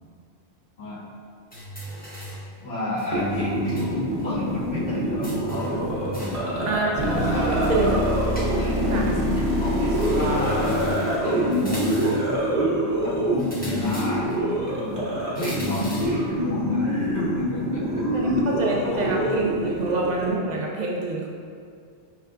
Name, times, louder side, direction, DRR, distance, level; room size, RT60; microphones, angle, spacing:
sound 1, 1.5-2.5 3.0-3.9 4.2-4.3 5.2-6.5 7.6-8.9 9.9-11.1 11.5-12.3 13.4-14.4 15.3-16.2, right 1 dB, 10° left, 0.8 m, -36 dB
voice 1, 2.6-6.5 6.8-7.0 7.3-7.9 8.6-12.4 12.8-15.0 15.3-18.0 18.9-19.1 19.7-19.8, left 1 dB, 65° left, -12 dB, 2.0 m, -32 dB
sound 2, 3.1-20.3, equal, 35° right, 0.9 m, -26 dB
voice 2, 6.7-8.1 8.9-9.1 18.1-21.3, right 2 dB, 65° right, -2 dB, 0.4 m, -27 dB
sound 3, 7.0-12.0 16.0-16.1, equal, 90° right, 1.0 m, -26 dB
5.9 x 3.2 x 2.3 m, 2.3 s
omnidirectional pair, 1.2 m